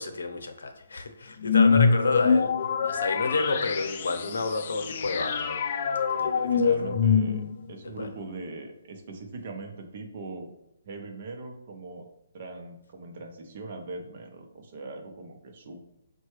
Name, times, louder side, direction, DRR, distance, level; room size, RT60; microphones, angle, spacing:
voice 1, 0.0-2.5 2.8-5.6 6.1-6.9 8.0-8.1, left 3 dB, 85° left, 6 dB, 0.7 m, -30 dB
sound 1, 1.4-7.7, left 5 dB, 45° left, 0.3 m, -25 dB
voice 2, 6.5-10.5 10.8-12.1 12.3-15.8, right 3 dB, 45° right, 3 dB, 0.7 m, -41 dB
5.5 x 2.2 x 3.1 m, 0.81 s
hypercardioid pair, 165°, 0 cm